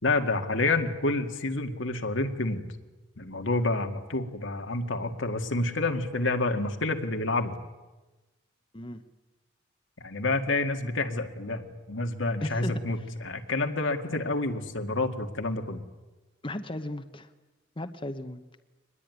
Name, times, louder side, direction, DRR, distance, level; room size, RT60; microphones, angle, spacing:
voice 1, 0.0-2.6 3.2-7.6 10.0-15.8, left 2 dB, 80° left, 5 dB, 2.1 m, -28 dB
voice 2, 12.4-13.1 16.4-17.3 17.8-18.4, left 1 dB, 25° left, 8 dB, 1.0 m, -36 dB
24.0 x 20.5 x 9.6 m, 1.1 s
head